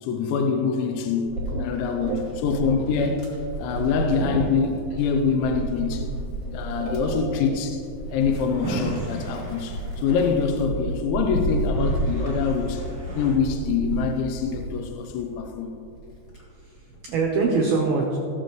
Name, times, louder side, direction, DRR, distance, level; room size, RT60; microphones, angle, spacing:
voice 1, 0.0-2.1 2.4-3.3 3.6-6.1 6.5-7.8 8.1-12.8 13.2-15.8, left 5 dB, 80° left, 4 dB, 2.7 m, -25 dB
Wind, 1.3-15.4 15.8-17.3, right 2 dB, 40° left, 1.3 m, -32 dB
voice 2, 1.3-2.5 4.1-4.4 6.7-7.5 16.6-18.2, right 4 dB, 90° right, -1 dB, 2.1 m, -27 dB
Drawer open or close, 8.1-10.9 11.4-11.5 11.7-13.4, right 2 dB, 30° right, 1.9 m, -35 dB
19.0 x 7.4 x 3.1 m, 2.5 s
omnidirectional pair, 5.8 m